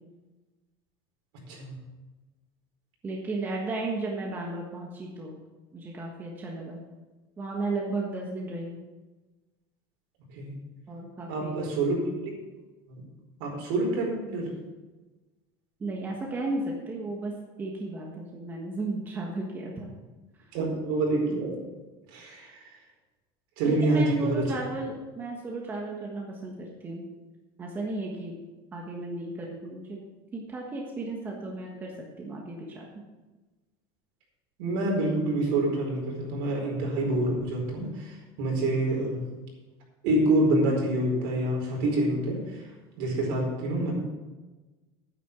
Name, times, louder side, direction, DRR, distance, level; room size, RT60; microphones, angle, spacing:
voice 1, 3.0-5.4 5.7-6.8 7.4-8.8 10.9-11.6 15.8-17.3 17.6-19.9 20.5-20.6 23.6-27.0 27.6-28.4 28.7-30.0 30.3-32.9, right 2 dB, 15° right, -1 dB, 1.4 m, -34 dB
voice 2, 11.3-12.0 12.9-13.0 13.4-14.4 20.5-21.6 22.1-22.5 23.6-24.3 34.6-37.9 38.4-39.2 40.0-42.4 43.0-43.9, right 2 dB, 70° right, -1 dB, 4.7 m, -26 dB
9.8 x 9.5 x 6.1 m, 1.2 s
cardioid pair, 170°, 12 cm